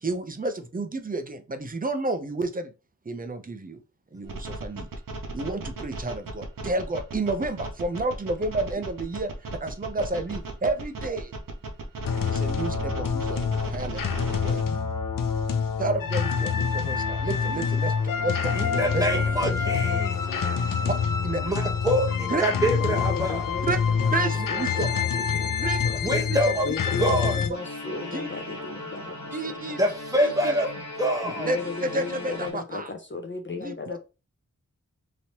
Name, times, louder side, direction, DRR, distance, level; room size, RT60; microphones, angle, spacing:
voice 1, 0.0-2.7 3.1-3.8 4.1-4.9 5.3-11.3 12.3-14.2 14.4-14.6 15.8-19.2 20.8-20.9 21.2-21.4 22.3-22.4 23.6-23.8 24.1-24.9 25.6-25.8 26.3-26.5 28.1-28.3 29.3-29.9 30.2-30.5 31.4-32.9 33.6-34.0, right 2 dB, 25° right, 0.5 m, -31 dB
sound 1, 4.2-14.6, right 2 dB, 90° right, 0.7 m, -36 dB
sound 2, 12.0-27.5, left 6 dB, 85° left, 0.5 m, -26 dB
voice 2, 13.8-14.1 17.5-18.3 18.8-20.6 22.5-26.0 26.6-29.8 31.2-34.0, left 4 dB, 35° left, 0.5 m, -36 dB
voice 3, 18.6-20.2 21.4-23.5 26.0-26.7 27.0-27.4 29.8-30.7 31.0-31.5, right 1 dB, 10° right, 1.0 m, -25 dB
sound 3, 27.5-32.5, left 1 dB, 60° left, 1.1 m, -38 dB
3.1 x 2.8 x 2.8 m
wide cardioid pair, 50°, 32 cm